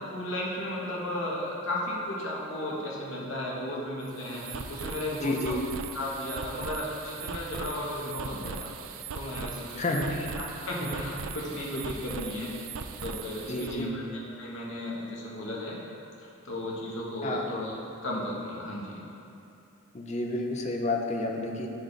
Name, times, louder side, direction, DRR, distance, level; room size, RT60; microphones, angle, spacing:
voice 1, 0.1-5.6 5.9-8.7 9.1-9.6 9.9-10.0 10.4-12.5 13.0-15.8 16.2-17.7 18.0-19.0, left 1 dB, 60° left, -4 dB, 1.2 m, -34 dB
sound 1, 4.0-13.8, right 5 dB, 70° right, 0.4 m, -39 dB
voice 2, 5.2-5.6 9.8-10.1 13.5-13.9 17.2-17.5 19.9-21.7, left 2 dB, 30° left, 2 dB, 0.5 m, -30 dB
10.0 x 3.4 x 4.0 m, 2.7 s
head